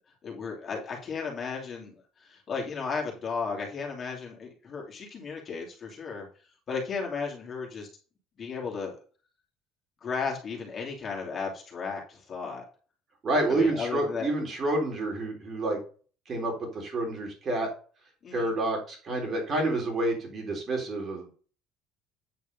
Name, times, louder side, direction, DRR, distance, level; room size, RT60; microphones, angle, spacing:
voice 1, 0.2-1.9 2.2-6.3 6.7-7.9 8.4-9.0 10.0-12.6 13.5-14.3 18.2-18.5, left 5 dB, 30° left, -1 dB, 2.7 m, -34 dB
voice 2, 13.2-15.8 16.3-17.7 18.3-21.3, right 2 dB, 35° right, 1 dB, 3.8 m, -28 dB
8.9 x 4.9 x 5.3 m, 0.39 s
cardioid pair, 140°, 0 cm